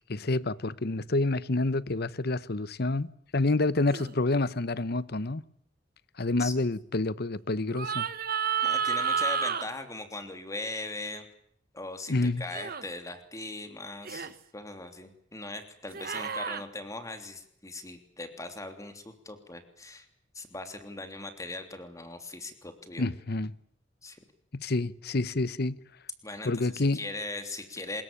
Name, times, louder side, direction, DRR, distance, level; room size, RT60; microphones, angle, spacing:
voice 1, 0.1-5.4 6.2-8.1 12.1-12.4 23.0-23.5 24.5-25.8 26.4-27.0, left 2 dB, 55° left, 1.0 m, -28 dB
sound 1, 3.9-4.1 7.7-9.7 12.5-12.8 14.1-14.3 15.9-16.6, right 7 dB, 50° right, 1.5 m, -30 dB
voice 2, 8.6-11.3 11.7-20.1 20.3-23.0 24.0-24.2 26.2-28.0, left 2 dB, 15° left, 3.2 m, -40 dB
24.5 x 21.5 x 8.9 m
head